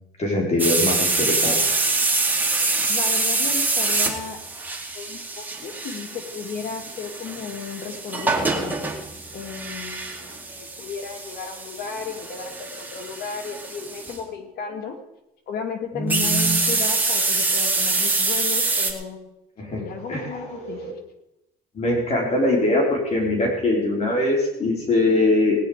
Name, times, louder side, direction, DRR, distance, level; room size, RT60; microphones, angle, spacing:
voice 1, 0.2-1.6 15.9-16.6 19.6-19.8 20.1-20.9 21.7-25.6, left 1 dB, 40° left, -1 dB, 4.5 m, -22 dB
sound 1, 0.6-14.2 16.1-18.9, right 3 dB, 10° right, 2.4 m, -25 dB
voice 2, 2.9-4.4 4.9-8.8 9.3-15.0 15.5-19.2 19.7-20.9, left 5 dB, 65° left, 4 dB, 2.8 m, -34 dB
18.5 x 10.0 x 5.2 m, 0.87 s
cardioid pair, 110°, 17 cm